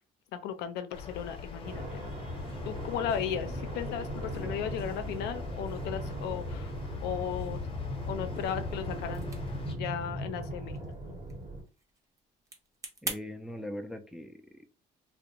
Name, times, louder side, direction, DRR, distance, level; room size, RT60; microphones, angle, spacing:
voice 1, 0.3-2.1 2.6-6.7 7.0-7.6 8.1-9.3 9.8-11.2, left 8 dB, 85° left, 10 dB, 0.5 m, -36 dB
sound 1, 0.9-9.7, left 5 dB, 35° left, 0.7 m, -42 dB
sound 2, 1.6-11.6, right 1 dB, 50° right, 1.0 m, -38 dB
sound 3, 9.0-13.2, right 2 dB, 20° right, 0.7 m, -44 dB
voice 2, 13.0-14.7, left 1 dB, 5° right, 5 dB, 0.3 m, -41 dB
2.4 x 2.1 x 2.9 m, 0.32 s
cardioid pair, 110°, 17 cm